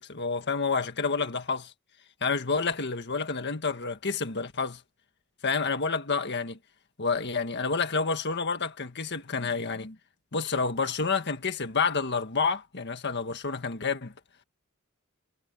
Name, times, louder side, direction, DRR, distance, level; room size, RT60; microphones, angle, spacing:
voice 1, 0.0-1.7 2.2-4.8 5.4-6.6 7.0-10.0 10.3-14.1, left 4 dB, 55° left, 1.6 m, -29 dB
head